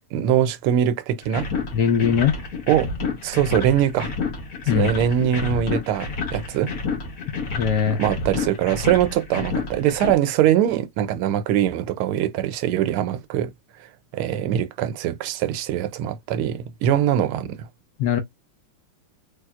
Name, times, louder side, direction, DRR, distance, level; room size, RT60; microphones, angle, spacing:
voice 1, 0.1-1.5 2.7-2.9 3.2-4.1 4.7-6.7 7.9-13.5 14.1-17.7, right 11 dB, 85° right, 1.5 m, -22 dB
sound 1, 1.2-10.1, left 4 dB, 50° left, 1.4 m, -30 dB
voice 2, 1.7-2.4 4.7-4.9 7.5-8.0 18.0-18.2, left 7 dB, 70° left, 1.0 m, -20 dB
3.4 x 3.0 x 2.3 m
omnidirectional pair, 2.4 m